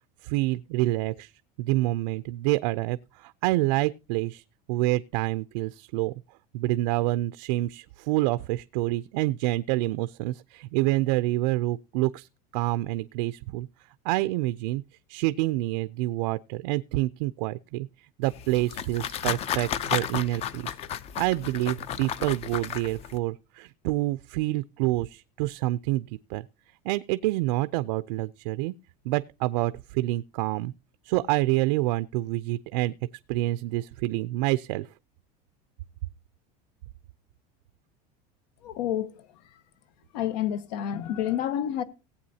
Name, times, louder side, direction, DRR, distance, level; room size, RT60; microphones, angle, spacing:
voice 1, 0.2-1.3 1.6-4.4 4.7-6.1 6.5-12.3 12.5-13.7 14.0-14.8 15.1-17.9 18.2-20.7 21.2-26.4 26.9-28.7 29.1-30.7 31.1-32.9 33.3-34.9, right 18 dB, 80° right, 0.5 m, -27 dB
sound 1, 18.2-23.2, left 9 dB, 30° left, 0.5 m, -33 dB
voice 2, 38.6-39.2 40.1-41.8, left 10 dB, 80° left, 1.3 m, -29 dB
18.5 x 8.4 x 2.8 m
cardioid pair, 170°, 21 cm